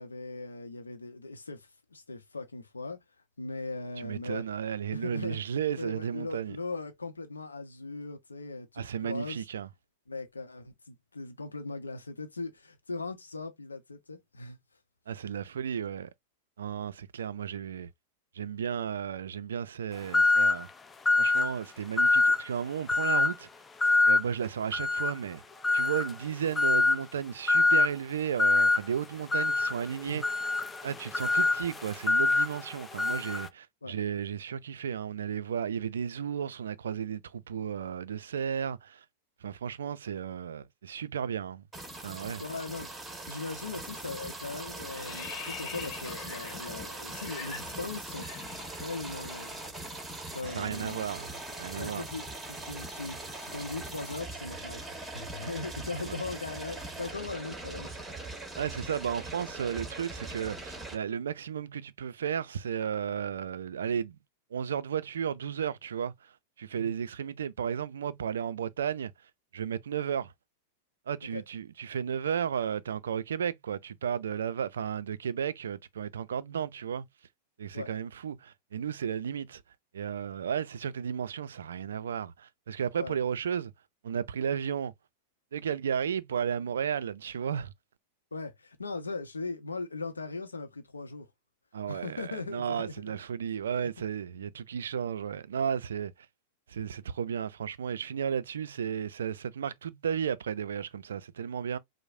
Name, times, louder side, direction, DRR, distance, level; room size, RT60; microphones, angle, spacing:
voice 1, 0.0-3.0 3.4-4.5 4.9-5.4 5.8-9.4 10.1-14.6 30.0-30.2 33.8-33.9 42.4-42.9 43.3-48.3 48.6-49.6 50.3-51.0 51.8-58.3 66.8-66.9 71.3-71.4 77.7-77.9 83.0-83.2 88.3-91.3 91.9-93.1 93.8-93.9, left 3 dB, 85° left, 0.6 m, -39 dB
voice 2, 4.0-6.6 8.8-9.7 15.1-16.1 16.6-17.9 18.3-20.7 21.2-23.5 24.1-25.4 25.7-30.2 30.8-39.0 39.4-41.6 42.0-42.4 50.4-51.3 51.6-52.1 56.0-56.2 58.6-64.2 64.5-66.3 66.6-69.1 69.5-70.3 71.1-77.1 77.6-79.6 79.9-83.7 84.0-84.9 85.5-87.7 91.7-96.1 96.7-101.8, right 8 dB, 70° right, 0.3 m, -34 dB
sound 1, 20.1-20.6 21.0-21.5 22.0-22.4 22.9-23.3 23.8-24.2 24.7-25.2 25.6-26.1 26.6-27.0 27.5-27.9 28.4-28.8 29.3-33.5, left 3 dB, 15° left, 0.3 m, -25 dB
sound 2, 41.7-60.9, right 2 dB, 5° right, 1.3 m, -41 dB
sound 3, 43.6-43.9 44.2-49.2 49.5-49.7 50.0-54.0, left 7 dB, 45° left, 0.8 m, -46 dB
4.6 x 2.0 x 2.5 m
figure-of-eight pair, 95°, 0 cm